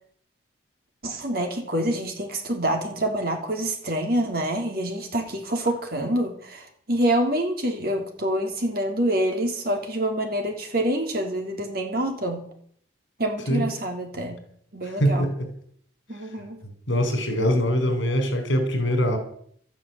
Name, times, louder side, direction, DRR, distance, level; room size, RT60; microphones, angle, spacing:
voice 1, 1.0-12.5 13.2-14.4 14.7-15.3 16.1-16.6, right 1 dB, 50° right, 4 dB, 3.5 m, -26 dB
voice 2, 14.8-15.5 16.9-19.2, equal, 75° left, 7 dB, 4.7 m, -23 dB
13.5 x 9.8 x 9.2 m, 0.63 s
head